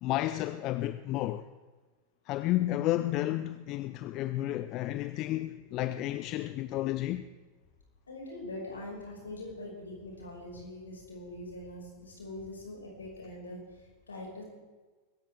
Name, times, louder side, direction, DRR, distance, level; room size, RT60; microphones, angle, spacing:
voice 1, 0.0-1.4 2.3-7.3, left 15 dB, 40° left, 0.5 m, -31 dB
voice 2, 8.1-14.4, left 1 dB, 75° left, 5.8 m, -43 dB
24.0 x 14.0 x 3.6 m
figure-of-eight pair, 90°, 0 cm